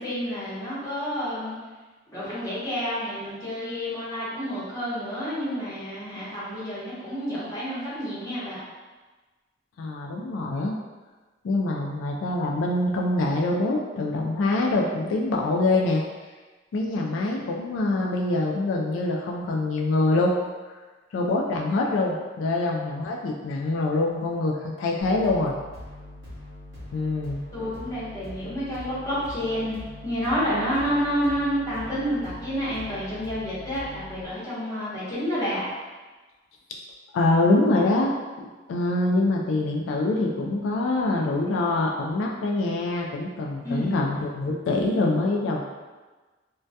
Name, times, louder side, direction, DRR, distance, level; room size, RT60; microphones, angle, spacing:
voice 1, 0.0-1.6 2.1-8.6 27.5-35.6 43.6-44.0, equal, 20° left, -11 dB, 0.9 m, -29 dB
voice 2, 9.8-10.8 11.4-16.0 16.7-20.3 21.1-25.5 26.9-27.4 37.1-38.1 38.7-45.6, left 2 dB, 85° left, -1 dB, 0.3 m, -24 dB
sound 1, 25.0-34.2, left 1 dB, 70° right, 0.8 m, -42 dB
2.2 x 2.2 x 2.6 m, 1.3 s
head